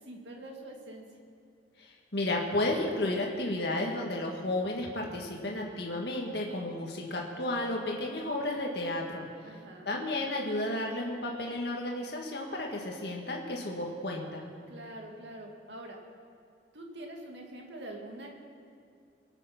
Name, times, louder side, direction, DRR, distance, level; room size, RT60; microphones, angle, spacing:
voice 1, 0.1-1.1 9.4-9.9 14.7-16.0 16.7-18.4, right 1 dB, 75° right, 1 dB, 2.3 m, -44 dB
voice 2, 2.1-9.2 9.9-14.4, left 1 dB, 60° left, -1 dB, 1.8 m, -32 dB
22.5 x 8.1 x 6.0 m, 2.5 s
head